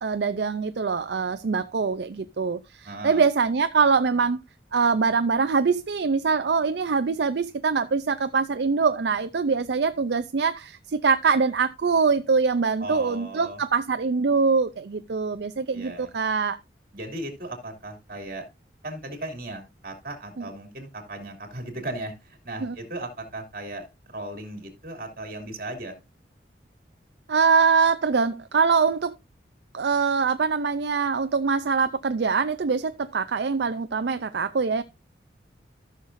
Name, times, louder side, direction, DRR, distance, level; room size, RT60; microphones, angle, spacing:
voice 1, 0.0-4.4 4.7-16.6 20.4-20.5 22.6-22.7 27.3-29.1 29.7-34.8, right 5 dB, 70° right, 0.5 m, -23 dB
voice 2, 2.8-3.2 12.8-13.6 15.7-16.1 16.9-18.4 18.8-26.0, right 1 dB, 50° right, 2.8 m, -37 dB
14.0 x 6.5 x 2.6 m
head